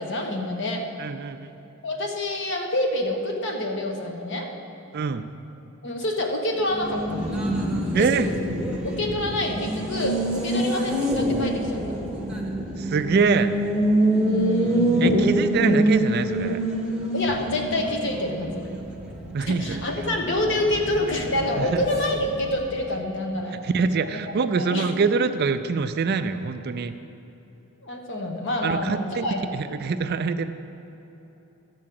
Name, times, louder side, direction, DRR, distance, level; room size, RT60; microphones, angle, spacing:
voice 1, 0.0-0.8 1.8-4.5 5.8-7.2 7.9-8.3 8.8-11.8 14.2-15.2 17.1-18.6 19.5-23.5 24.1-24.2 24.5-24.9 27.8-29.6, left 1 dB, 55° left, 2 dB, 1.2 m, -27 dB
voice 2, 1.0-1.5 4.9-5.3 7.9-8.3 12.8-13.6 15.0-16.6 19.3-19.8 21.6-21.8 23.5-26.9 28.6-29.3 29.5-30.4, right 5 dB, 45° right, 11 dB, 0.3 m, -24 dB
Race car auto racing, 6.6-22.9, right 1 dB, 5° right, 0.9 m, -26 dB
12.5 x 4.7 x 7.6 m, 3.0 s
head